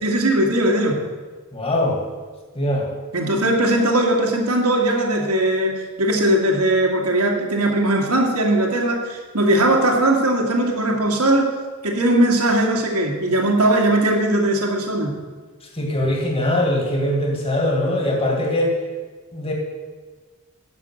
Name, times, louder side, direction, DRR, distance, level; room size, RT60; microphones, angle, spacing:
voice 1, 0.0-1.0 3.1-11.5 11.8-15.1, right 1 dB, 90° right, 0 dB, 2.3 m, -19 dB
voice 2, 1.5-2.0 2.6-2.9 15.7-18.7 19.3-19.5, left 1 dB, 25° left, 0 dB, 2.2 m, -21 dB
11.0 x 6.6 x 7.8 m, 1.4 s
head